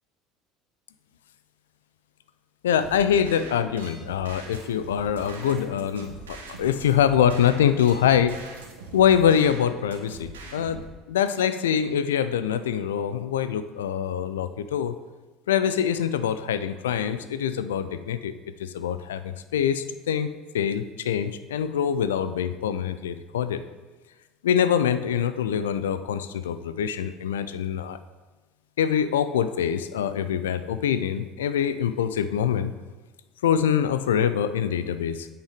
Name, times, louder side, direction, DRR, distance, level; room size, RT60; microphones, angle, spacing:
voice 1, 2.6-8.4 8.9-10.8 11.1-15.0 15.5-18.3 18.6-23.6 24.4-28.0 28.8-32.7 33.4-35.3, left 8 dB, 80° left, 12 dB, 0.4 m, -24 dB
sound 1, 2.8-10.8, right 3 dB, 80° right, 1.2 m, -42 dB
9.0 x 5.9 x 5.0 m, 1.3 s
hypercardioid pair, 65°, 0 cm